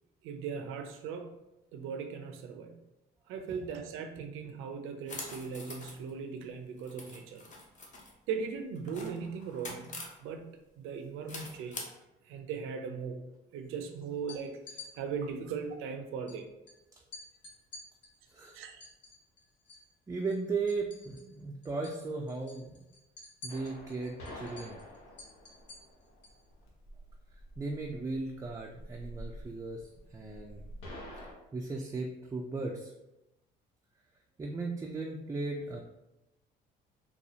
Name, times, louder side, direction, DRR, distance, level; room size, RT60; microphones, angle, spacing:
voice 1, 0.2-1.4 1.7-2.8 3.3-7.4 8.3-11.8 12.3-13.2 13.5-14.6 15.0-16.5 18.5-18.8, right 6 dB, 75° right, 5 dB, 0.5 m, -39 dB
sound 1, 5.1-6.1 6.8-8.1 8.8-10.2 11.3-11.8, left 2 dB, 35° left, 0.8 m, -44 dB
sound 2, 14.2-14.9 16.3-16.4 16.7-16.8 17.1-19.9 20.2-21.4 21.6-22.0 22.3-26.4, left 3 dB, 60° left, 1.1 m, -50 dB
voice 2, 20.1-22.8 23.4-24.8 27.6-30.6 31.5-32.9 34.4-35.8, right 3 dB, 15° right, 0 dB, 0.3 m, -36 dB
sound 3, 23.5-31.3, equal, 85° left, 0.9 m, -48 dB
4.2 x 2.3 x 2.7 m, 0.93 s
cardioid pair, 95°, 21 cm